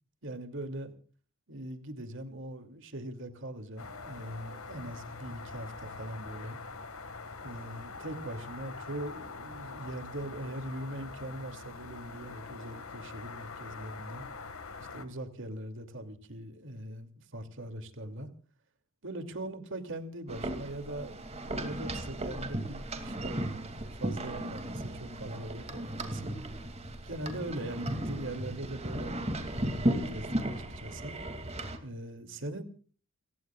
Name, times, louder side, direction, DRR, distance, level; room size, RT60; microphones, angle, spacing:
voice 1, 0.2-0.9 1.5-6.6 7.4-14.2 14.9-18.3 19.0-23.4 23.9-26.4 27.0-31.2 31.8-32.6, right 1 dB, 60° right, 7 dB, 2.7 m, -41 dB
sound 1, 3.8-15.0, left 4 dB, 70° left, 1.9 m, -44 dB
sound 2, 20.3-31.8, right 1 dB, 30° right, 2.5 m, -35 dB
30.0 x 17.0 x 2.4 m, 0.41 s
head